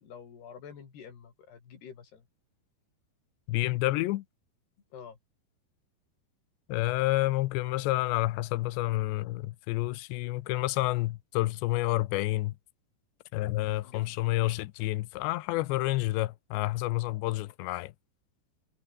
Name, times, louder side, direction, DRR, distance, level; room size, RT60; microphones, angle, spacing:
voice 1, 0.0-2.3 4.9-5.2 13.8-14.1, left 7 dB, 70° left, 6.0 m, -48 dB
voice 2, 3.5-4.2 6.7-12.5 13.3-17.9, left 18 dB, 90° left, 3.1 m, -29 dB
omnidirectional pair, 4.9 m